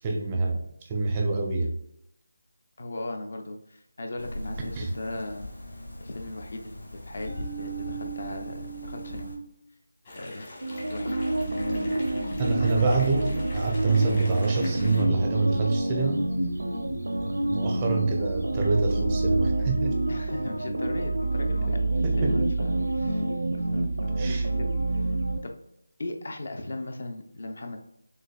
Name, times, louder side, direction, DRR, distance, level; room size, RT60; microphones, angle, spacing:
voice 1, 0.0-1.8 4.8-4.9 12.4-16.3 17.3-19.9 22.0-22.4 24.2-24.5, right 3 dB, 15° right, 2 dB, 0.4 m, -26 dB
voice 2, 2.8-5.5 6.0-9.3 10.2-10.5 10.9-11.2 11.7-12.1 20.1-23.2 23.7-25.1 25.4-25.5 26.0-27.9, left 2 dB, 55° left, 4 dB, 0.6 m, -38 dB
sound 1, 4.2-9.4, right 2 dB, 80° left, 1.4 m, -38 dB
sound 2, 10.0-15.0, left 1 dB, 30° left, 1.1 m, -43 dB
sound 3, 10.6-25.4, right 2 dB, 90° right, 0.6 m, -27 dB
6.3 x 2.5 x 2.3 m, 0.77 s
figure-of-eight pair, 170°, 0 cm